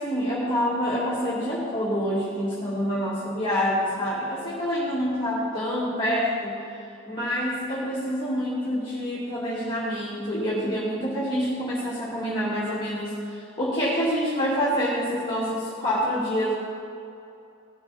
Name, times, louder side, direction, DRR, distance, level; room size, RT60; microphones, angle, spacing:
voice 1, 0.0-6.6 7.1-16.5, equal, 20° left, -9 dB, 2.4 m, -27 dB
18.5 x 6.8 x 4.2 m, 2.7 s
head